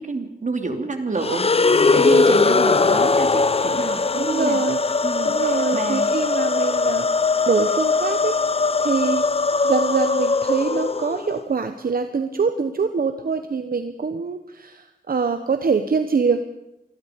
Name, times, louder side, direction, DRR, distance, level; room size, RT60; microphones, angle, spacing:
voice 1, 0.0-4.6 5.0-6.2, right 3 dB, 55° right, 6 dB, 3.0 m, -28 dB
sound 1, 1.2-11.4, left 4 dB, 40° left, 0.7 m, -20 dB
voice 2, 4.1-4.8 5.2-7.1 7.5-8.4 8.8-9.3 9.6-16.4, right 5 dB, 80° right, 8 dB, 1.1 m, -24 dB
27.5 x 21.0 x 5.2 m, 0.87 s
wide cardioid pair, 95°, 15 cm